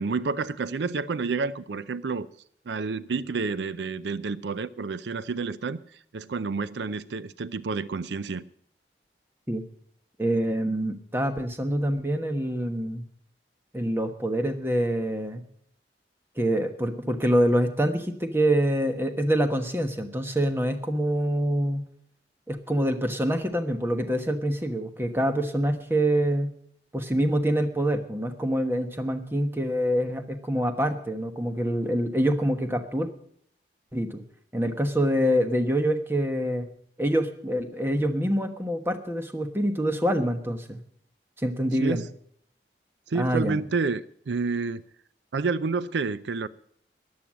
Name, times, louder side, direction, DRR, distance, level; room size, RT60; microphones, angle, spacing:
voice 1, 0.0-2.3 2.7-8.4 41.8-42.1 43.1-44.8 45.3-46.5, right 4 dB, 80° right, 17 dB, 0.5 m, -29 dB
voice 2, 10.2-13.0 13.7-15.4 16.4-21.8 22.5-26.5 26.9-33.1 33.9-34.2 34.5-36.7 37.0-40.8 41.4-42.0 43.1-43.6, equal, 15° right, 7 dB, 1.2 m, -26 dB
14.0 x 10.5 x 7.4 m, 0.65 s
head